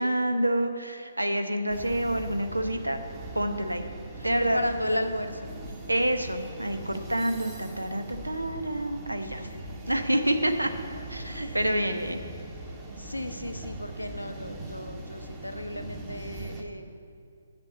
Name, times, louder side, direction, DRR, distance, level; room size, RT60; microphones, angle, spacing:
voice 1, 0.0-3.0 3.3-3.9 4.2-4.6 5.9-9.4 9.9-10.7 11.1-12.2, right 1 dB, 80° right, 7 dB, 0.9 m, -27 dB
sound 1, 1.7-16.6, right 2 dB, 15° right, 1.1 m, -41 dB
voice 2, 4.4-5.5 9.2-9.3 11.2-11.6 13.0-16.9, left 1 dB, 85° left, 7 dB, 0.9 m, -34 dB
8.8 x 6.9 x 7.3 m, 2.4 s
figure-of-eight pair, 135°, 0 cm